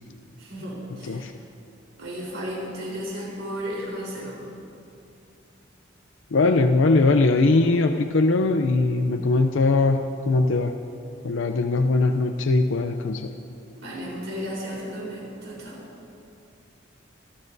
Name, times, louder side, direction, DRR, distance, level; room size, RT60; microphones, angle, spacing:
voice 1, 0.4-1.3 2.0-4.5 13.8-15.8, equal, 85° right, -4 dB, 4.0 m, -34 dB
voice 2, 6.3-10.7 11.2-13.3, left 3 dB, 85° left, 6 dB, 0.5 m, -21 dB
24.0 x 13.5 x 2.7 m, 2.7 s
head